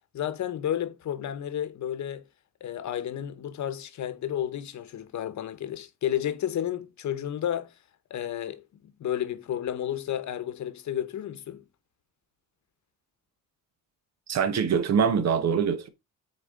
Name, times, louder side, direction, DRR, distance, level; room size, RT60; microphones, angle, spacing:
voice 1, 0.1-2.3 2.6-7.7 8.1-11.6, left 10 dB, 60° left, 0.9 m, -32 dB
voice 2, 14.3-15.9, right 7 dB, 55° right, 1.1 m, -24 dB
8.4 x 4.2 x 3.7 m
cardioid pair, 140°, 32 cm